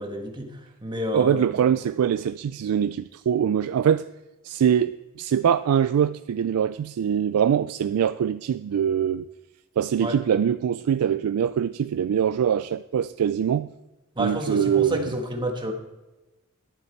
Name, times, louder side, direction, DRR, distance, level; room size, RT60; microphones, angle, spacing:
voice 1, 0.0-1.7 10.0-10.2 14.2-15.7, equal, 20° right, 1.5 m, -30 dB
voice 2, 1.1-4.1 4.4-9.3 9.8-13.7 14.2-15.1, right 8 dB, 85° right, 0.3 m, -23 dB
11.0 x 11.0 x 4.5 m
head